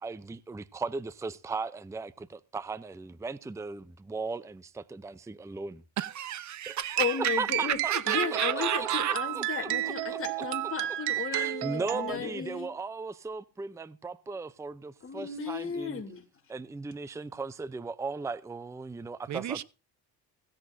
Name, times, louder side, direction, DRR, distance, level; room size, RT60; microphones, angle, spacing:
voice 1, 0.0-5.8 6.7-8.9 9.4-10.2 11.3-16.0 16.5-19.6, right 4 dB, 5° right, 0.6 m, -37 dB
voice 2, 6.0-9.2 19.3-19.6, right 10 dB, 45° right, 0.9 m, -32 dB
sound 1, 6.8-12.1, right 16 dB, 85° right, 0.8 m, -32 dB
voice 3, 7.0-12.7 15.0-16.2, left 6 dB, 30° left, 3.3 m, -35 dB
16.5 x 16.0 x 2.7 m
cardioid pair, 110°, 40 cm